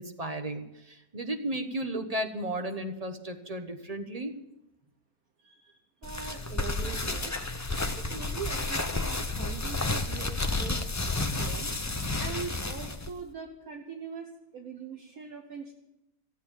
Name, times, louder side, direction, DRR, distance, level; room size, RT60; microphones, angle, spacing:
voice 1, 0.0-4.4, right 1 dB, 25° right, 6 dB, 1.0 m, -34 dB
voice 2, 5.4-7.5 8.0-10.8 11.2-11.7 12.1-15.7, right 6 dB, 65° right, 2 dB, 1.6 m, -42 dB
sound 1, 6.0-13.1, left 2 dB, 25° left, 0.3 m, -31 dB
14.5 x 8.2 x 8.9 m, 0.90 s
omnidirectional pair, 1.7 m